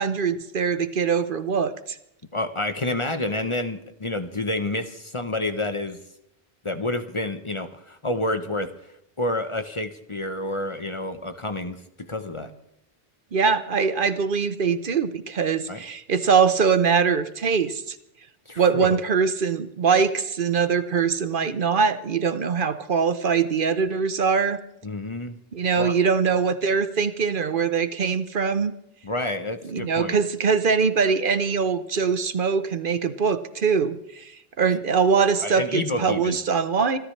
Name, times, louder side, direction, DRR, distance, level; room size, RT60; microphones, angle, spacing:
voice 1, 0.0-2.0 13.3-18.0 18.6-24.6 25.5-28.7 29.6-34.3 34.6-37.0, right 5 dB, 60° right, 12 dB, 0.9 m, -22 dB
voice 2, 2.3-6.0 6.6-8.7 9.2-12.5 15.7-15.8 18.5-19.0 24.8-25.4 25.8-25.9 29.0-30.1 35.4-36.4, left 2 dB, 30° left, 8 dB, 0.9 m, -29 dB
25.5 x 13.0 x 3.3 m, 0.78 s
omnidirectional pair, 1.0 m